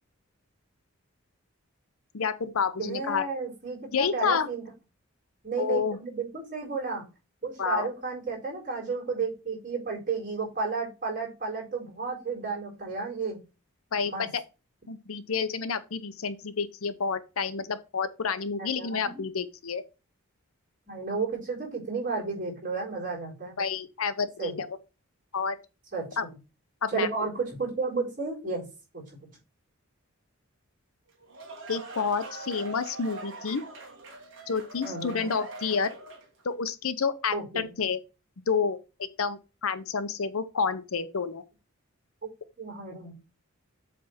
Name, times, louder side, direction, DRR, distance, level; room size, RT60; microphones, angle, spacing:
voice 1, 2.1-3.3 3.9-4.5 5.6-6.0 7.6-7.9 13.9-14.4 14.9-19.8 23.6-24.7 25.3-25.6 26.2-26.3 26.8-27.1 31.7-33.6 34.5-35.9 36.4-38.0 38.5-41.4, left 5 dB, 75° left, 0.7 m, -29 dB
voice 2, 2.8-4.6 5.4-7.1 7.4-13.4 14.0-14.3 18.6-19.3 20.9-23.6 24.4-24.6 25.9-26.4 26.9-28.6 28.9-29.3 34.8-35.3 37.3-37.7 42.2-42.3 42.6-43.1, right 4 dB, 35° right, 4.4 m, -32 dB
sound 1, 31.1-36.4, right 3 dB, 55° right, 1.8 m, -42 dB
7.7 x 3.4 x 5.6 m
head